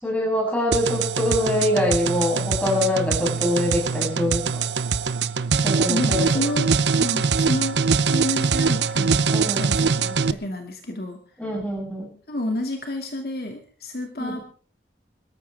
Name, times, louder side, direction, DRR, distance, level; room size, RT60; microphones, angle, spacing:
voice 1, 0.0-4.5 5.6-6.3 9.3-9.6 11.4-12.1 14.2-14.4, left 1 dB, 5° left, -2 dB, 7.7 m, -24 dB
sound 1, 0.7-10.3, right 5 dB, 80° right, 0.7 m, -23 dB
voice 2, 5.9-7.8 8.1-11.2 12.3-14.4, left 1 dB, 60° left, 4 dB, 2.3 m, -30 dB
25.5 x 13.5 x 3.5 m, 0.42 s
head